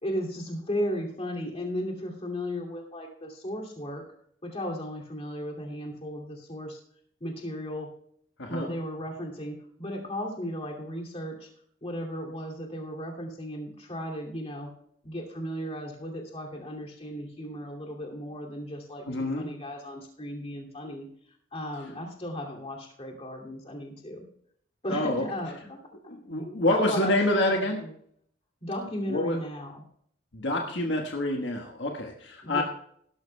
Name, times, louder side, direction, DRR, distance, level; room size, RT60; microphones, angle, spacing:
voice 1, 0.0-4.0 4.4-6.8 7.2-7.9 8.5-11.5 11.8-14.7 15.0-21.1 21.5-24.2 24.8-25.9 26.4-27.9 28.6-29.8 32.4-32.6, equal, 30° left, 0 dB, 2.6 m, -35 dB
voice 2, 8.4-8.7 19.1-19.5 24.9-25.2 26.1-27.8 29.1-29.4 30.3-32.6, left 1 dB, 65° left, 2 dB, 1.5 m, -27 dB
18.0 x 12.5 x 2.3 m, 0.65 s
head